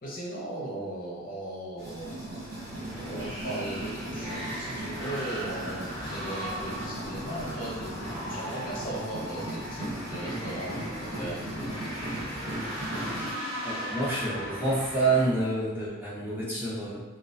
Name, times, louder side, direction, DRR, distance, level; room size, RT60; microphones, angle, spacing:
voice 1, 0.0-11.5, right 1 dB, 40° left, -5 dB, 0.5 m, -38 dB
sound 1, 1.8-13.3, right 1 dB, 45° right, 0.9 m, -38 dB
sound 2, 2.4-15.3, equal, 80° right, 1.2 m, -38 dB
voice 2, 13.6-17.0, right 2 dB, 10° right, -8 dB, 0.5 m, -28 dB
2.3 x 2.1 x 2.6 m, 1.1 s
head